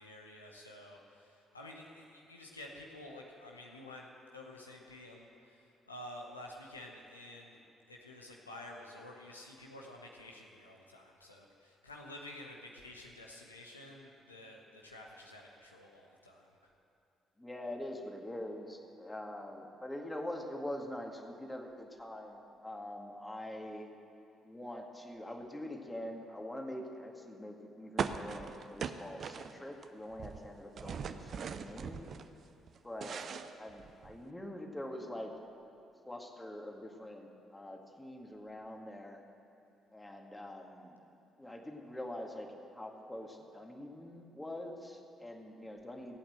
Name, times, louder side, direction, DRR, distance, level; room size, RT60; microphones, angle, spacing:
voice 1, 0.0-7.6 7.9-16.5, left 1 dB, 85° left, -1 dB, 1.0 m, -50 dB
voice 2, 17.4-23.9 24.4-32.1 32.8-33.3 33.6-35.3 36.0-39.2 39.9-41.0 41.4-46.2, left 1 dB, 10° left, 2 dB, 2.0 m, -44 dB
sound 1, 28.0-29.9 30.1-32.3 32.7-34.2, right 6 dB, 45° right, 0.6 m, -40 dB
16.0 x 8.6 x 7.8 m, 2.7 s
figure-of-eight pair, 45°, 0 cm